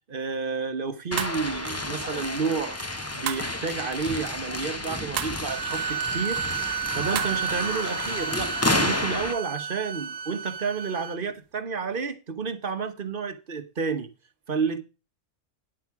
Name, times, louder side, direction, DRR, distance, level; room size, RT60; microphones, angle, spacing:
voice 1, 0.1-2.8 3.1-6.5 6.9-14.1 14.5-14.8, right 5 dB, 45° right, 1.2 m, -30 dB
sound 1, 1.1-9.3, left 2 dB, 15° left, 0.8 m, -30 dB
sound 2, 1.2-1.5 3.3-3.6 5.2-5.4 7.1-7.4, right 11 dB, 85° right, 1.1 m, -31 dB
sound 3, 5.5-11.2, right 7 dB, 65° right, 0.9 m, -32 dB
10.0 x 8.3 x 4.7 m
omnidirectional pair, 1.3 m